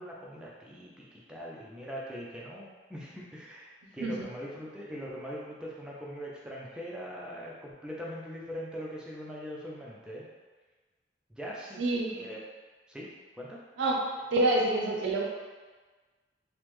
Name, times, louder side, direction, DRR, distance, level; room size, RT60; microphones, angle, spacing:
voice 1, 0.0-10.3 11.3-11.8 12.1-12.4 12.9-13.6, equal, 5° right, -5 dB, 0.3 m, -41 dB
voice 2, 11.8-12.3 13.8-14.0 14.3-15.2, right 2 dB, 75° right, -1 dB, 0.4 m, -27 dB
3.3 x 2.0 x 3.0 m, 1.4 s
head